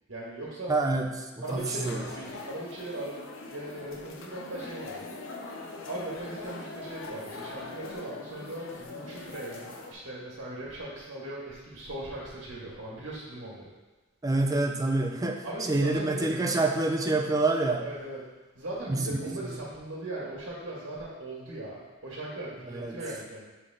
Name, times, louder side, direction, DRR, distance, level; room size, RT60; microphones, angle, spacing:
voice 1, 0.1-0.8 1.4-3.2 3.5-5.1 5.9-13.7 15.4-16.3 17.8-18.2 18.6-23.5, right 1 dB, 75° right, -6 dB, 1.7 m, -39 dB
voice 2, 0.7-2.0 14.2-17.9 18.9-19.5 22.7-23.0, right 2 dB, 15° right, 3 dB, 0.4 m, -27 dB
sound 1, 1.4-9.9, left 3 dB, 70° left, 0.6 m, -42 dB
7.2 x 3.4 x 3.8 m, 1.2 s
head